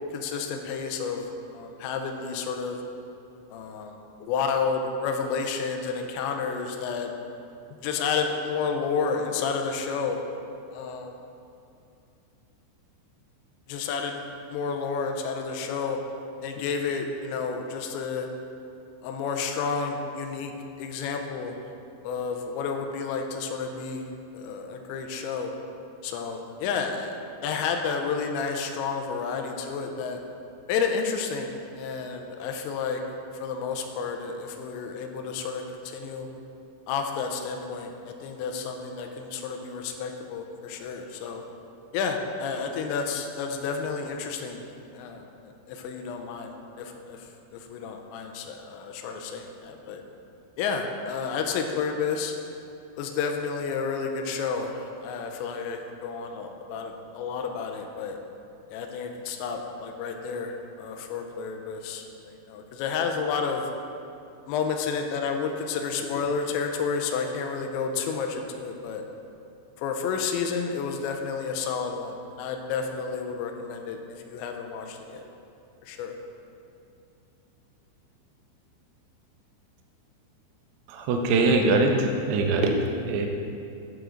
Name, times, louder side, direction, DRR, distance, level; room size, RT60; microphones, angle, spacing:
voice 1, 0.1-2.8 3.5-7.1 7.8-10.2 10.7-11.1 13.7-14.2 14.5-16.0 16.4-18.3 19.0-20.5 20.8-21.6 22.0-25.5 26.0-27.1 27.4-30.2 30.7-33.0 33.3-36.3 36.9-41.4 41.9-44.6 44.9-50.0 50.6-52.4 53.0-58.2 58.7-63.7 64.5-69.0 69.8-75.2 75.8-76.2, left 5 dB, 85° left, 4 dB, 2.8 m, -31 dB
voice 2, 80.9-82.7 83.1-83.3, right 3 dB, 75° right, 2 dB, 2.6 m, -22 dB
8.9 x 7.8 x 3.8 m, 2.6 s
omnidirectional pair, 5.4 m